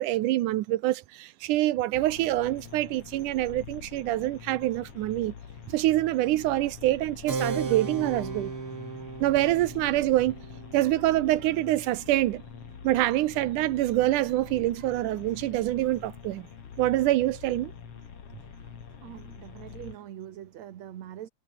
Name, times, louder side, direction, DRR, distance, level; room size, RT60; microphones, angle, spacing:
voice 1, 0.0-5.3 5.7-8.5 9.2-10.4 10.7-12.4 12.8-16.5 16.8-17.7, right 15 dB, 80° right, 2.3 m, -26 dB
sound 1, 1.9-20.0, left 7 dB, 50° left, 3.0 m, -45 dB
Keyboard (musical), 7.3-13.4, right 4 dB, 40° right, 4.8 m, -37 dB
voice 2, 19.0-21.3, right 11 dB, 65° right, 2.6 m, -43 dB
omnidirectional pair, 3.6 m